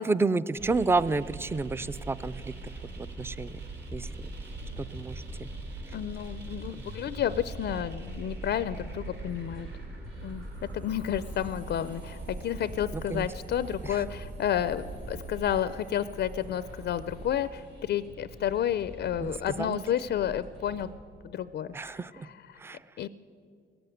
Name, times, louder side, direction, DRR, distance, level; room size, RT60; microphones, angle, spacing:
voice 1, 0.0-3.6 3.9-4.1 4.8-5.5 12.9-13.3 13.8-14.0 19.2-19.8 21.7-22.3 22.6-22.8, right 3 dB, 10° right, 18 dB, 0.3 m, -30 dB
sound 1, 0.6-19.4, right 2 dB, 60° right, 3.1 m, -42 dB
sound 2, 3.8-20.9, right 1 dB, 80° right, 4.5 m, -46 dB
voice 2, 5.9-9.7 10.2-10.5 10.7-20.9 21.2-21.9 22.5-22.6 23.0-23.1, left 10 dB, 60° left, 15 dB, 0.4 m, -31 dB
17.0 x 7.8 x 9.1 m, 2.4 s
cardioid pair, 90°, 20 cm